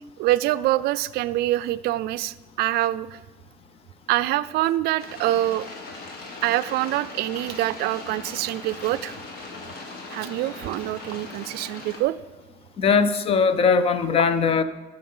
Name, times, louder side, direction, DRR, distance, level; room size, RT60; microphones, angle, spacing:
voice 1, 0.2-3.2 4.1-5.7 6.4-9.1 10.1-12.2, right 15 dB, 65° right, 16 dB, 0.4 m, -25 dB
sound 1, 5.0-12.0, left 3 dB, 60° left, 1.9 m, -39 dB
voice 2, 12.8-14.6, left 5 dB, 35° left, 12 dB, 0.6 m, -20 dB
12.5 x 6.7 x 5.5 m, 1.2 s
cardioid pair, 160°, 18 cm